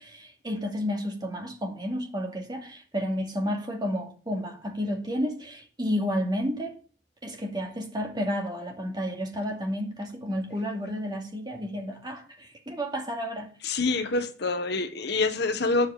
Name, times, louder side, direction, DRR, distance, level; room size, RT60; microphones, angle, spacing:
voice 1, 0.0-6.8 7.2-13.5, equal, 25° right, 2.4 m, -31 dB
voice 2, 13.6-15.9, left 3 dB, 60° left, 1.2 m, -26 dB
10.5 x 7.7 x 6.6 m
head